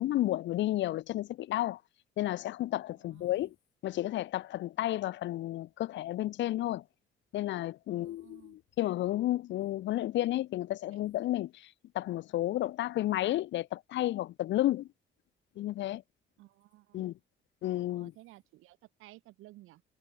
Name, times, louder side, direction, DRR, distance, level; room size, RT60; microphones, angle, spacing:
voice 1, 0.0-1.8 2.2-3.5 3.8-6.8 7.3-11.7 11.9-14.9 15.6-16.0 16.9-17.1 17.6-18.1, left 14 dB, 65° left, 0.6 m, -32 dB
voice 2, 3.0-3.5 7.9-8.6 16.4-17.1 17.9-19.8, right 17 dB, 85° right, 5.6 m, -56 dB
cardioid pair, 90°, 20 cm